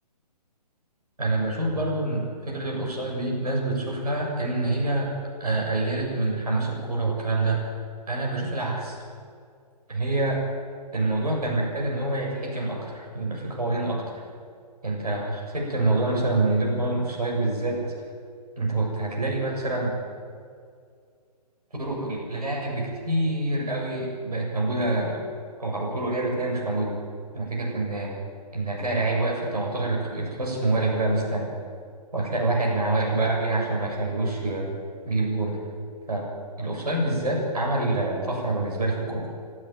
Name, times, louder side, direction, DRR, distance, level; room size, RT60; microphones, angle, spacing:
voice 1, 1.2-5.1 5.4-7.7 8.1-9.0 9.9-10.4 10.9-14.2 14.8-17.9 18.6-19.9 21.8-25.2 25.6-26.9 27.3-28.1 28.5-31.5 32.1-34.7 35.0-35.6 36.1-36.3 36.6-39.3, right 2 dB, 65° right, -1 dB, 7.4 m, -26 dB
23.5 x 12.5 x 9.3 m, 2.2 s
figure-of-eight pair, 135°, 21 cm